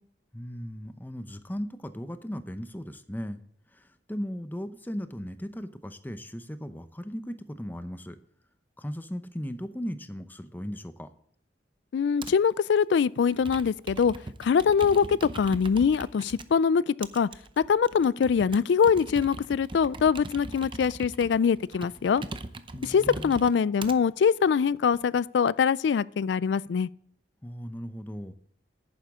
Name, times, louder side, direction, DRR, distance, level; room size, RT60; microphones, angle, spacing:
voice 1, 0.3-3.4 4.1-8.2 8.8-11.1 22.7-23.3 27.4-28.4, equal, 10° left, 0.7 m, -37 dB
voice 2, 11.9-14.1 14.4-17.3 17.7-22.2 22.8-26.9, left 6 dB, 80° left, 0.3 m, -23 dB
Computer keyboard, 12.2-12.5 13.3-16.5 17.0-24.0 24.6-25.2, right 2 dB, 30° right, 0.6 m, -41 dB
11.0 x 9.5 x 3.6 m
head